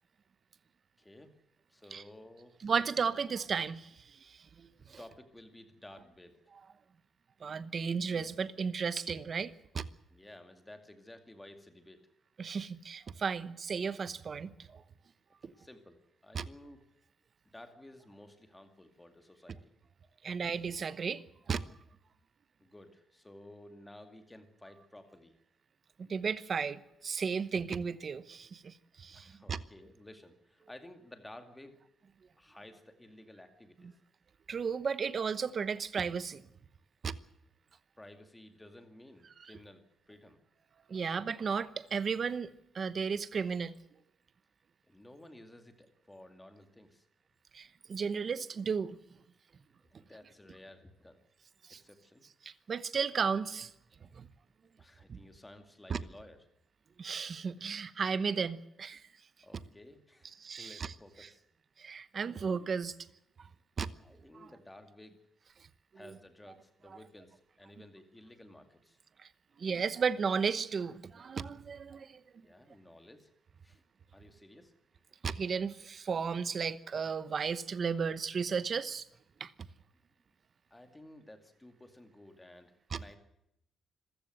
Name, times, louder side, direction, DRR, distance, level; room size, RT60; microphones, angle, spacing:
voice 1, 1.0-1.4 1.7-2.6 5.0-6.4 10.1-12.0 15.4-16.8 17.5-19.7 20.0-20.1 22.6-25.4 29.1-31.7 32.4-34.0 38.0-40.4 40.9-41.0 44.8-47.0 49.9-51.2 51.8-52.2 54.8-56.4 59.4-61.4 64.0-65.2 65.9-69.0 72.4-73.3 73.6-73.8 74.1-74.7 80.7-83.2, left 1 dB, 10° left, 2.3 m, -54 dB
voice 2, 2.6-3.9 4.2-5.0 7.4-9.8 12.4-14.8 15.4-15.5 16.3-16.4 20.2-21.6 26.0-29.6 34.5-36.4 37.0-37.1 40.9-43.7 47.5-49.0 51.7-51.8 52.4-53.7 54.1-54.3 55.1-55.2 55.9-56.0 57.0-59.0 60.4-60.9 61.8-62.9 63.8-63.9 66.0-66.1 69.6-72.2 75.2-79.1 79.4-79.5 82.9-83.0, right 6 dB, 35° right, 1.0 m, -34 dB
26.0 x 15.5 x 7.8 m
cardioid pair, 180°, 0 cm